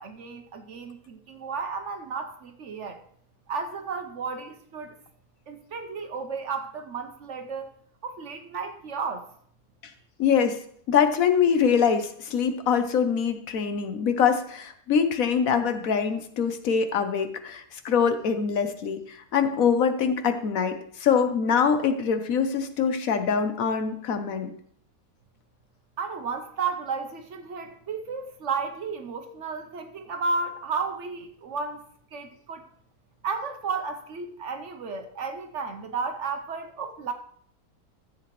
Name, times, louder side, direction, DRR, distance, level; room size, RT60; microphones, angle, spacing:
voice 1, 0.0-3.0 3.5-5.0 5.5-7.7 8.0-9.2 26.0-31.9 32.1-32.7 33.2-37.1, right 4 dB, 55° right, 6 dB, 0.9 m, -33 dB
voice 2, 10.2-10.6 10.9-24.5, left 7 dB, 65° left, 8 dB, 1.2 m, -24 dB
13.5 x 7.7 x 3.1 m, 0.62 s
omnidirectional pair, 1.6 m